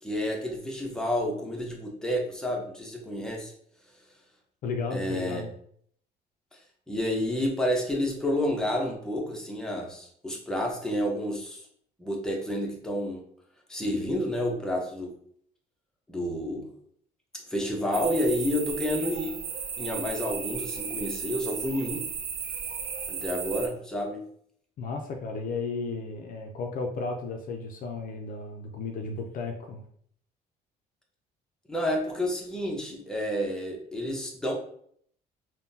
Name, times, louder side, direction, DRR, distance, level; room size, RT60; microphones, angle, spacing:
voice 1, 0.0-3.5 4.9-5.4 6.5-6.6 6.9-11.7 12.0-13.2 13.7-15.1 16.1-16.7 17.5-19.3 19.8-22.0 23.1-24.2 31.7-34.5, left 1 dB, 5° left, -1 dB, 0.7 m, -30 dB
voice 2, 4.6-5.5 24.8-29.8, left 4 dB, 55° left, 3 dB, 0.5 m, -34 dB
sound 1, 17.9-23.7, right 6 dB, 75° right, 0.6 m, -35 dB
3.5 x 2.2 x 2.7 m, 0.63 s
cardioid pair, 110°, 17 cm